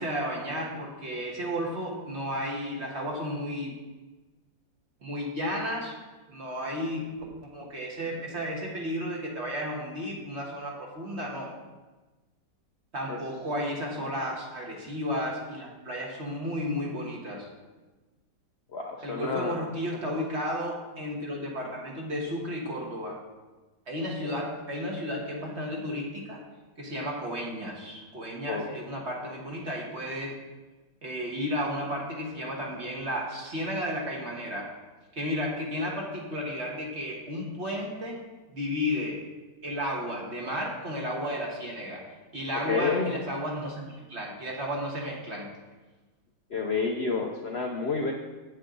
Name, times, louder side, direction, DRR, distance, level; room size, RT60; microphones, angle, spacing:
voice 1, 0.0-3.8 5.0-6.0 6.3-7.2 7.4-11.5 12.9-17.5 19.0-23.2 23.9-26.4 26.8-30.3 31.0-34.7 35.1-38.2 38.5-39.2 39.6-42.1 42.3-45.5, equal, 40° right, -2 dB, 1.7 m, -33 dB
voice 2, 18.7-19.6 20.0-20.2 24.2-24.3 28.5-28.6 42.6-43.1 46.5-48.1, left 4 dB, 55° left, 1 dB, 0.7 m, -29 dB
8.9 x 8.5 x 3.9 m, 1.2 s
omnidirectional pair, 1.9 m